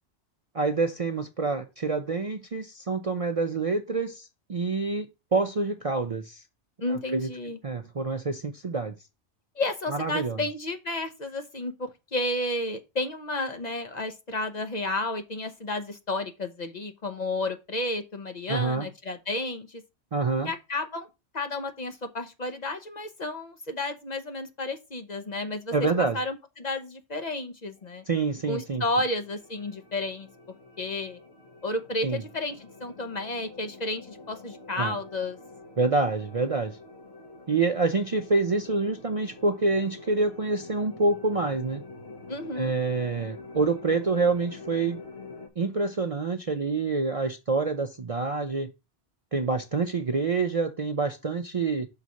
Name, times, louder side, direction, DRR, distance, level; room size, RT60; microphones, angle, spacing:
voice 1, 0.5-6.4 6.9-7.3 7.6-8.9 9.9-10.4 18.5-18.9 20.1-20.5 25.7-26.2 28.1-28.8 32.0-32.2 34.8-35.0 35.8-36.8 37.5-41.8 42.6-45.0 45.6-48.7 49.3-51.9, right 3 dB, 40° right, 0.5 m, -27 dB
voice 2, 6.8-7.6 9.6-19.8 20.4-21.1 21.3-25.9 26.1-28.0 28.5-30.3 30.8-31.2 31.6-35.4 42.3-42.7, left 2 dB, 40° left, 0.8 m, -32 dB
sound 1, 27.7-45.5, left 3 dB, 60° left, 1.5 m, -47 dB
5.9 x 4.1 x 6.2 m
omnidirectional pair, 1.2 m